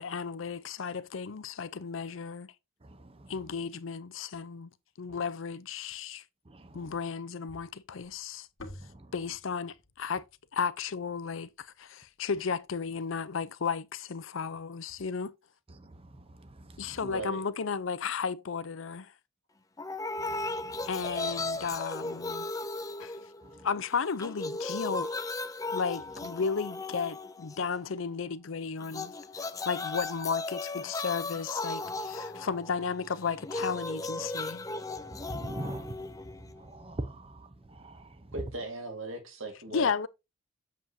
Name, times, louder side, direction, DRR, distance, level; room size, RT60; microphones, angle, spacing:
voice 1, 0.0-2.5 3.3-4.7 5.0-6.2 6.7-8.5 9.1-10.2 10.5-15.3 16.8-19.1 20.8-22.5 23.0-23.2 23.6-25.1 25.7-34.7 39.7-40.1, left 5 dB, 70° left, 0.6 m, -34 dB
voice 2, 2.8-3.3 6.5-6.8 8.8-9.1 15.8-16.9 20.3-20.9 23.5-23.7 35.1-38.3, right 1 dB, 25° right, 0.7 m, -43 dB
sound 1, 7.5-11.8, left 1 dB, 90° left, 1.9 m, -51 dB
voice 3, 17.0-17.4 38.3-39.9, right 2 dB, 75° right, 1.9 m, -38 dB
sound 2, 19.8-23.8 24.1-27.8 28.8-36.8, left 3 dB, 15° left, 0.4 m, -36 dB
7.6 x 7.3 x 2.7 m
head